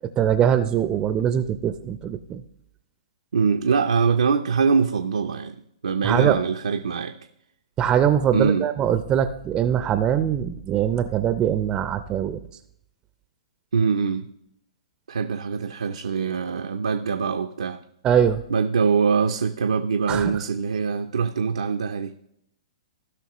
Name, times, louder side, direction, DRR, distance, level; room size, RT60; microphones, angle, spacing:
voice 1, 0.2-2.4 6.0-6.4 7.8-12.4 18.0-18.4 20.1-20.3, right 9 dB, 25° right, 11 dB, 0.5 m, -22 dB
voice 2, 3.3-7.2 8.3-8.7 13.7-14.3 15.1-17.8 18.5-22.1, right 5 dB, 75° right, 6 dB, 0.6 m, -23 dB
16.5 x 5.8 x 3.0 m, 0.74 s
hypercardioid pair, 125°, 3 cm